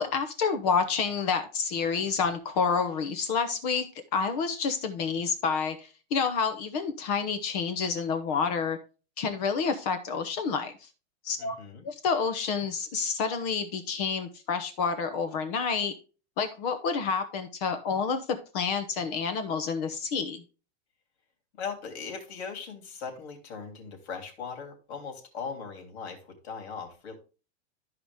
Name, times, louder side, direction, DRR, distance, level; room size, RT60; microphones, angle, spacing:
voice 1, 0.0-3.9 4.1-8.8 9.2-10.7 11.2-11.5 11.8-15.9 16.4-18.2 18.5-20.4, left 5 dB, 35° left, 8 dB, 1.0 m, -29 dB
voice 2, 11.4-11.9 21.5-27.2, left 5 dB, 70° left, 3 dB, 3.2 m, -39 dB
13.0 x 4.9 x 3.5 m, 0.34 s
supercardioid pair, 180°, 33 cm